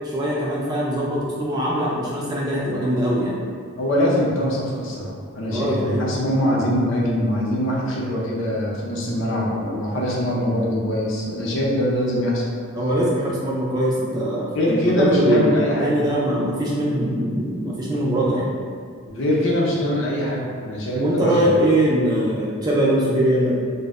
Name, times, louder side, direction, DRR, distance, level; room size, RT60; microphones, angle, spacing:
voice 1, 0.0-3.4 5.5-6.1 12.7-18.5 20.9-23.5, right 1 dB, 20° right, -5 dB, 0.3 m, -22 dB
voice 2, 3.8-12.4 14.5-15.9 19.1-21.6, left 1 dB, 65° left, -4 dB, 0.5 m, -23 dB
2.1 x 2.0 x 3.4 m, 2.1 s
head